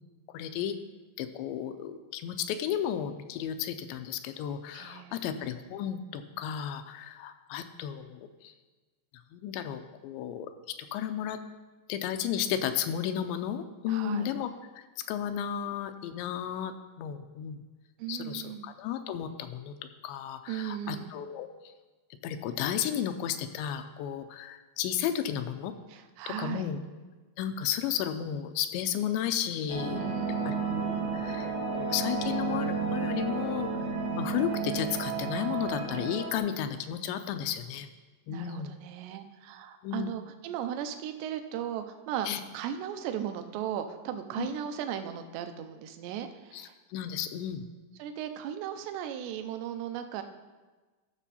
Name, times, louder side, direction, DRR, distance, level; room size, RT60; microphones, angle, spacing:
voice 1, 0.3-0.8 1.2-8.5 9.1-11.4 11.9-17.6 18.1-19.8 20.0-21.7 22.2-25.7 26.3-26.8 27.4-30.0 30.5-30.6 30.9-33.9 34.2-37.9 38.3-38.7 39.8-40.1 42.2-42.4 44.4-44.5 46.5-47.7, left 9 dB, 85° left, 8 dB, 2.8 m, -33 dB
voice 2, 4.7-5.1 13.9-14.3 18.0-18.7 20.5-21.1 25.9-26.7 29.9-30.6 38.3-46.7 48.0-50.2, right 9 dB, 80° right, 8 dB, 2.7 m, -37 dB
sound 1, 29.7-36.4, right 5 dB, 55° right, 0.7 m, -32 dB
14.5 x 6.2 x 4.2 m, 1.3 s
omnidirectional pair, 5.1 m